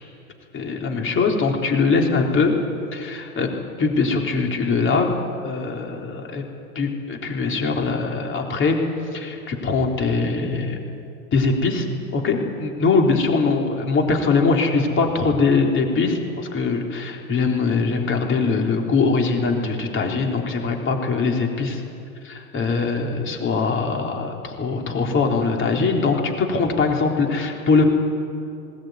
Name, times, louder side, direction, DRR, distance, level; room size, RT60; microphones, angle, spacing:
voice 1, 0.5-2.6 2.9-3.5 3.8-5.2 5.4-6.4 6.8-8.8 9.1-10.8 11.3-11.9 12.1-21.8 22.2-27.9, left 4 dB, 25° left, 2 dB, 3.7 m, -22 dB
19.5 x 18.5 x 9.4 m, 2.6 s
hypercardioid pair, 120°, 44 cm